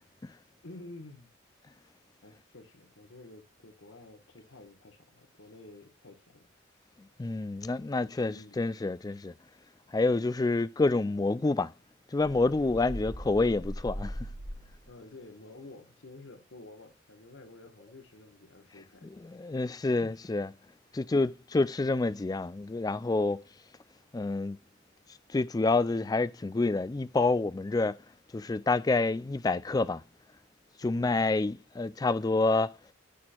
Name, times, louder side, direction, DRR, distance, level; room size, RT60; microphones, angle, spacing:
voice 1, 0.6-1.3 2.2-6.5 8.2-8.6 12.8-13.0 14.9-19.1 19.4-19.7 30.8-31.2, left 2 dB, 85° left, 1.4 m, -50 dB
voice 2, 7.2-9.3 9.9-11.7 12.1-14.2 19.2-20.5 20.9-23.4 24.1-24.6 25.3-28.0 28.3-30.0 30.8-32.7, left 3 dB, 20° left, 0.3 m, -28 dB
sound 1, 12.2-15.0, equal, 70° right, 3.2 m, -40 dB
13.0 x 4.4 x 2.3 m
head